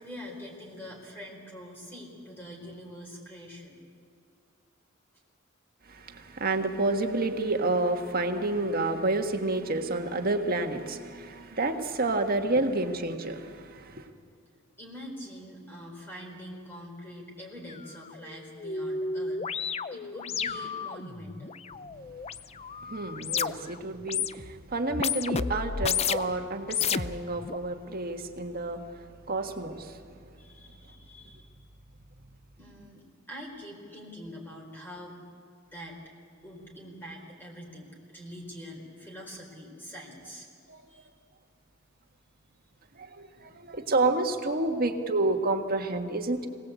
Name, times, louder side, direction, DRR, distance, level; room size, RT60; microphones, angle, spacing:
voice 1, 0.0-3.8 11.3-11.6 14.8-21.6 30.4-31.5 32.6-35.3 35.7-36.0 36.4-40.5 40.9-41.1 43.4-43.5, equal, 10° left, -1 dB, 4.4 m, -44 dB
voice 2, 5.9-14.0 22.9-28.8 29.3-30.0 40.7-40.8 43.0-46.5, right 2 dB, 50° right, 5 dB, 1.7 m, -29 dB
sound 1, 17.7-17.8 18.1-23.8 24.0-24.6 24.9-26.3 26.7-27.6, left 6 dB, 30° left, 0.5 m, -32 dB
25.5 x 18.5 x 8.3 m, 2.2 s
head